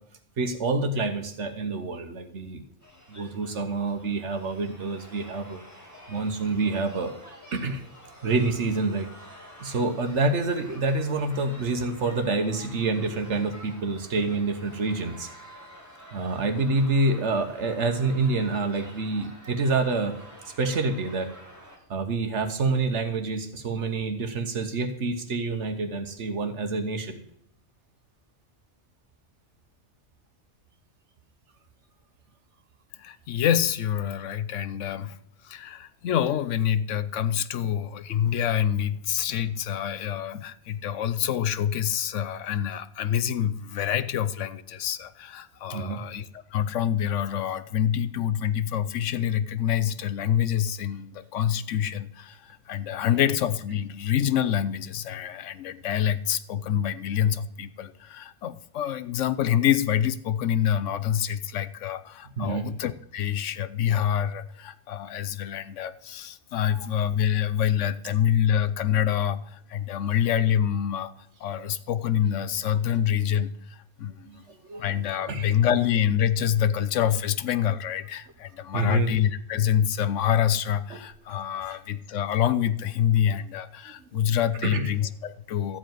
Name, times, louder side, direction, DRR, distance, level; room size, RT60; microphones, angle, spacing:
voice 1, 0.4-2.6 3.1-5.6 6.1-7.1 7.5-7.8 8.2-9.1 9.6-15.3 16.1-20.2 20.4-21.3 21.9-27.2 45.7-46.0 62.4-62.7 66.7-66.8 71.6-71.7 74.3-74.8 75.3-75.5 78.7-79.1 80.9-81.0 81.7-81.8 84.1-84.3 84.6-84.9, right 3 dB, 70° right, 7 dB, 1.3 m, -27 dB
sound 1, 2.8-21.8, equal, 15° left, 2.5 m, -49 dB
voice 2, 33.0-35.2 35.4-71.1 71.4-74.4 74.8-85.8, left 9 dB, 80° left, 12 dB, 1.0 m, -26 dB
13.5 x 5.0 x 9.1 m, 0.72 s
omnidirectional pair, 1.2 m